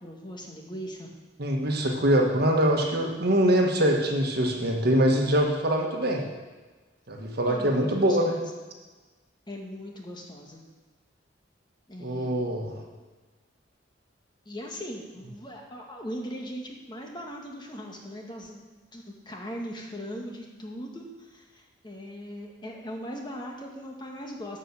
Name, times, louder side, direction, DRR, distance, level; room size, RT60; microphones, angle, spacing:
voice 1, 0.0-1.1 7.4-8.4 9.5-10.6 11.9-12.4 14.4-18.6 18.9-24.6, equal, 25° left, 0 dB, 1.5 m, -39 dB
voice 2, 1.4-6.2 7.1-8.4 12.0-12.7, equal, 55° right, 1 dB, 1.5 m, -23 dB
11.0 x 5.5 x 7.2 m, 1.3 s
head